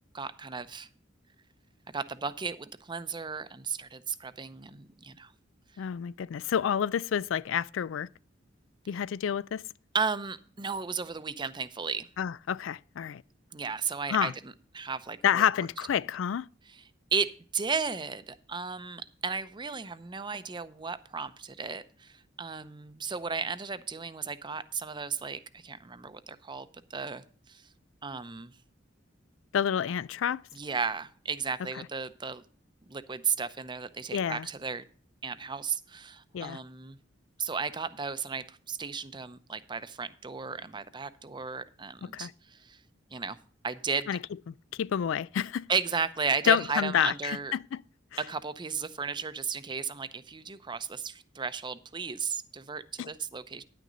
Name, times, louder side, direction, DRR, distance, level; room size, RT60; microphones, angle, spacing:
voice 1, 0.1-0.9 1.9-5.3 9.9-12.1 13.5-15.4 16.7-16.8 17.1-27.2 27.5-27.6 28.0-28.5 30.5-32.4 32.9-34.8 35.2-37.0 37.4-42.8 43.1-43.4 43.6-44.1 45.7-47.5 48.2-53.6, right 5 dB, 25° right, 0.6 m, -34 dB
voice 2, 5.8-8.1 8.9-9.6 12.2-13.2 14.1-14.3 15.2-16.5 29.5-30.4 31.8-31.9 34.1-34.5 36.3-36.6 42.1-42.3 44.1-44.2 44.7-45.7 46.5-47.8 53.0-53.1, left 8 dB, 85° left, 0.3 m, -28 dB
10.0 x 9.2 x 3.9 m
head